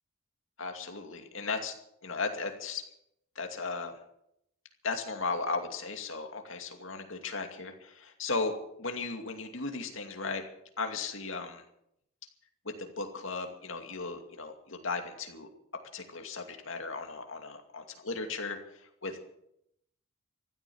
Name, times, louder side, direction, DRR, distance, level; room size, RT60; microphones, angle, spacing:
voice 1, 0.6-1.7 2.0-2.8 3.4-3.9 4.8-10.4 10.8-11.6 12.6-15.5 15.9-19.2, left 4 dB, 65° left, 4 dB, 2.5 m, -36 dB
15.0 x 13.0 x 7.1 m, 0.78 s
head